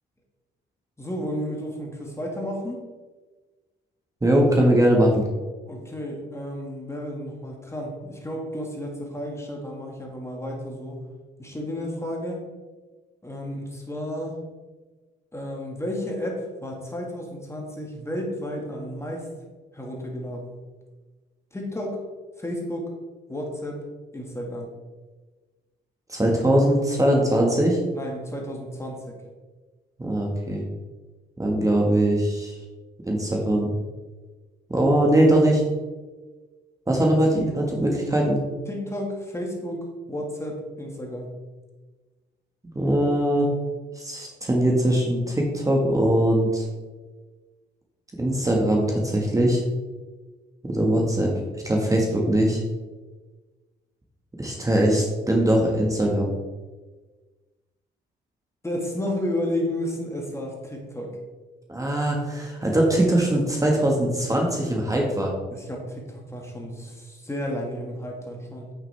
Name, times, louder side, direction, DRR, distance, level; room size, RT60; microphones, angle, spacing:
voice 1, 1.0-2.8 5.7-11.0 11.4-12.4 13.2-14.4 15.3-19.3 19.7-20.6 21.5-22.0 22.4-22.9 23.3-23.8 24.1-24.7 27.9-29.2 38.7-41.4 58.6-61.2 65.5-68.7, left 1 dB, 15° left, 0 dB, 1.8 m, -32 dB
voice 2, 4.2-5.3 26.1-27.8 30.0-30.6 31.4-32.6 33.1-33.7 34.7-35.6 36.9-38.4 42.7-43.5 43.9-46.7 48.2-49.6 50.6-52.6 54.4-56.3 61.7-65.3, right 1 dB, 15° right, -1 dB, 1.5 m, -21 dB
8.3 x 6.5 x 3.4 m, 1.3 s
cardioid pair, 90°, 20 cm